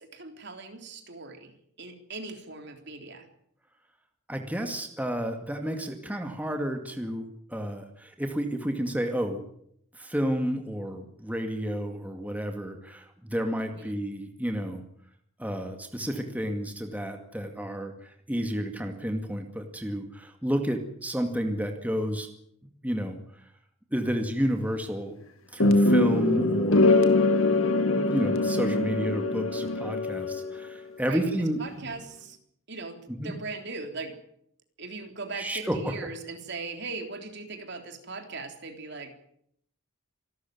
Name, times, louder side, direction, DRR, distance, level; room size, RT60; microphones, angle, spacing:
voice 1, 0.0-1.5 1.8-3.3 13.7-14.0 31.1-31.2 31.6-32.4 32.7-34.2 34.8-39.1, right 3 dB, 55° right, 5 dB, 3.6 m, -39 dB
voice 2, 4.3-9.4 9.9-14.8 15.4-22.3 22.8-23.5 23.9-25.2 25.5-27.0 27.8-31.6 33.1-33.3 35.4-35.9, equal, 5° right, 4 dB, 2.2 m, -31 dB
sound 1, 25.6-30.7, left 2 dB, 75° left, 2.3 m, -23 dB
27.0 x 13.0 x 9.4 m, 0.71 s
head